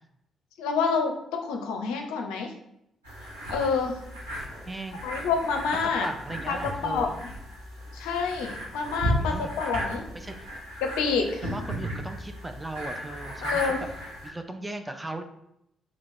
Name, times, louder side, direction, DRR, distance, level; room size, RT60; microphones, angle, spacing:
voice 1, 0.6-2.5 3.5-4.0 5.0-6.1 6.5-6.6 6.8-7.1 7.9-10.0 10.8-11.4 13.4-13.8, left 5 dB, 70° left, 3 dB, 0.4 m, -27 dB
sound 1, 3.0-14.3, equal, 85° right, 1.1 m, -35 dB
voice 2, 4.6-5.1 6.0-7.1 9.1-9.5 10.1-10.5 11.4-13.7 14.2-15.2, right 2 dB, 15° right, 6 dB, 0.5 m, -37 dB
2.9 x 2.9 x 4.2 m, 0.79 s
figure-of-eight pair, 40°, 0 cm